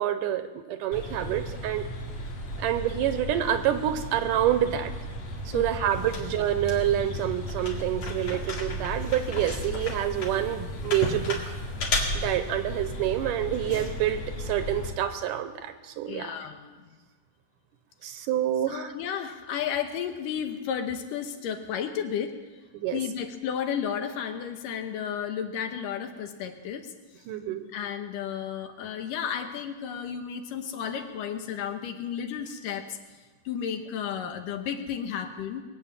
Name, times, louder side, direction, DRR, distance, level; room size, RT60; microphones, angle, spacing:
voice 1, 0.0-1.8 2.6-4.9 5.5-11.5 12.2-16.3 18.0-18.9 22.7-23.0 27.3-27.7, right 11 dB, 75° right, 10 dB, 2.2 m, -27 dB
sound 1, 0.9-14.9, left 1 dB, 55° left, 3.0 m, -34 dB
voice 2, 16.1-16.8 18.7-22.4 22.9-26.9 27.7-33.0 33.5-35.6, left 8 dB, 75° left, 6 dB, 2.6 m, -33 dB
21.5 x 8.5 x 7.2 m, 1.4 s
omnidirectional pair, 4.0 m